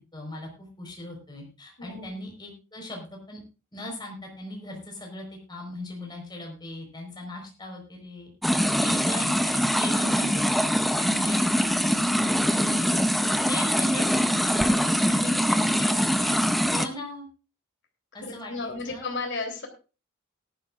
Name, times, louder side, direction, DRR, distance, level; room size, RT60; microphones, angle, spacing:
voice 1, 0.1-3.4 3.7-8.3 8.8-10.7 11.0-12.0 12.4-13.0 13.5-15.7 16.0-16.4 16.7-17.3 18.1-19.1, left 1 dB, 20° left, 1 dB, 4.5 m, -39 dB
voice 2, 1.8-2.1 15.8-16.3 18.2-19.7, left 3 dB, 60° left, 3 dB, 3.4 m, -34 dB
sound 1, 8.4-16.9, equal, ahead, 0.6 m, -23 dB
18.5 x 11.5 x 2.5 m, 0.33 s
head